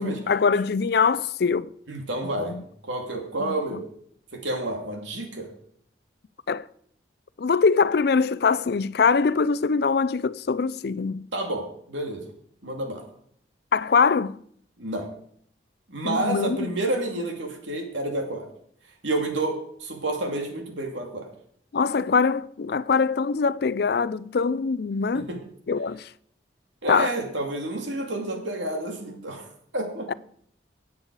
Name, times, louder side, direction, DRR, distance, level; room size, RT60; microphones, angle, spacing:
voice 1, 0.0-1.7 2.4-2.6 3.4-3.6 6.5-6.6 7.4-11.3 13.7-14.4 16.0-16.6 21.7-25.3 25.7-26.1 26.9-27.1 30.1-30.2, left 5 dB, 55° left, 0.4 m, -23 dB
voice 2, 1.9-2.5 2.8-3.9 4.3-5.5 11.3-12.2 12.6-13.1 14.8-15.1 15.9-18.5 19.0-21.3 25.1-25.4 26.8-30.1, right 2 dB, 80° right, 2.7 m, -29 dB
17.0 x 8.3 x 4.8 m
head